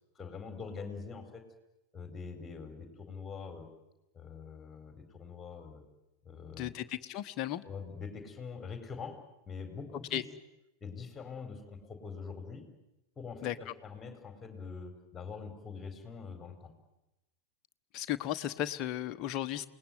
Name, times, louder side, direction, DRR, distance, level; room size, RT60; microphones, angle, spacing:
voice 1, 0.1-1.5 1.9-3.7 4.1-5.8 6.2-6.7 7.6-10.3 10.8-12.7 13.2-16.7, left 5 dB, 15° left, 7 dB, 4.4 m, -44 dB
voice 2, 6.6-7.6 10.1-10.2 13.4-13.5 17.9-19.7, left 12 dB, 35° left, 9 dB, 1.1 m, -35 dB
28.0 x 19.5 x 9.4 m, 0.95 s
figure-of-eight pair, 90°, 0 cm